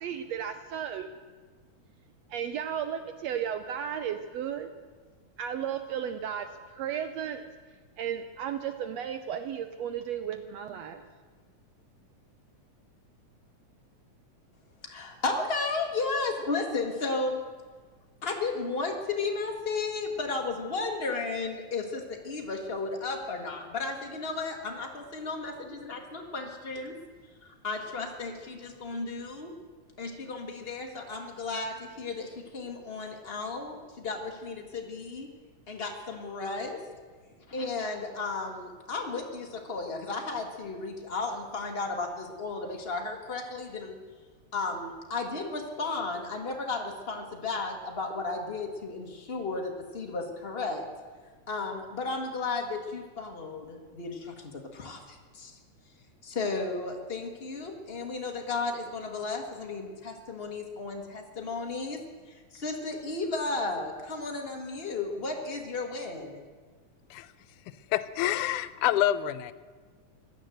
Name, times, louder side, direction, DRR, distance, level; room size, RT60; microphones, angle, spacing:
voice 1, 0.0-1.1 2.3-4.7 5.4-7.5 8.0-11.0, right 8 dB, 75° right, 9 dB, 1.6 m, -34 dB
voice 2, 14.8-17.4 18.2-27.0 27.4-29.5 30.0-35.3 35.7-36.8 37.5-44.0 44.5-50.9 51.5-55.6 56.2-62.0 62.3-66.4, left 3 dB, 65° left, 2 dB, 0.5 m, -34 dB
voice 3, 67.9-69.5, left 12 dB, 90° left, 15 dB, 2.1 m, -27 dB
16.0 x 11.5 x 7.7 m, 1.5 s
omnidirectional pair, 3.5 m